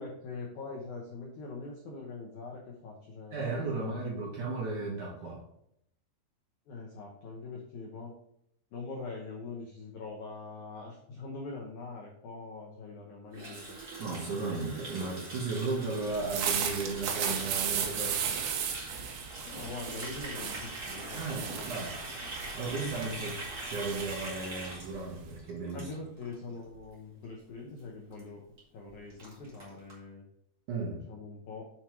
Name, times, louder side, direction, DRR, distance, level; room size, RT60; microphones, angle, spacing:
voice 1, 0.0-4.0 6.7-8.1 8.7-13.8 19.4-21.8 25.7-28.4 28.7-30.2 31.1-31.6, left 3 dB, 85° left, -1 dB, 1.7 m, -43 dB
voice 2, 3.3-5.4 14.0-18.3 21.1-22.0 22.5-25.9 30.7-31.0, right 3 dB, 60° right, -3 dB, 2.2 m, -35 dB
Water tap faucet, 13.3-26.3 26.6-26.9 27.2-27.5 27.8-27.9 28.1-28.2 28.6-28.7 28.9-29.9, right 2 dB, 35° right, 1.4 m, -43 dB
sound 1, 16.1-25.4, right 7 dB, 80° right, 3.2 m, -35 dB
7.5 x 4.4 x 4.5 m, 0.73 s
omnidirectional pair, 5.0 m